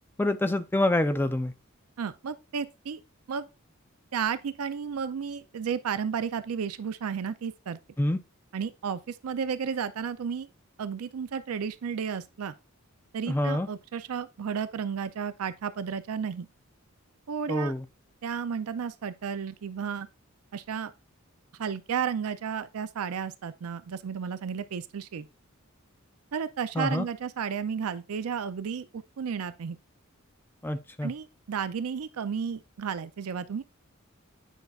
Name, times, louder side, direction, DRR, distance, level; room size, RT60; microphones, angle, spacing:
voice 1, 0.2-1.5 8.0-8.2 13.3-13.7 17.5-17.8 26.8-27.0 30.6-31.1, left 1 dB, 10° left, 0.4 m, -26 dB
voice 2, 2.0-3.0 3.3-3.5 4.1-7.8 8.5-10.5 10.8-12.6 13.1-16.5 17.3-17.7 18.2-20.1 20.5-20.9 21.6-25.3 26.3-29.8 31.0-33.6, right 7 dB, 90° right, 0.4 m, -33 dB
9.2 x 5.3 x 2.4 m
head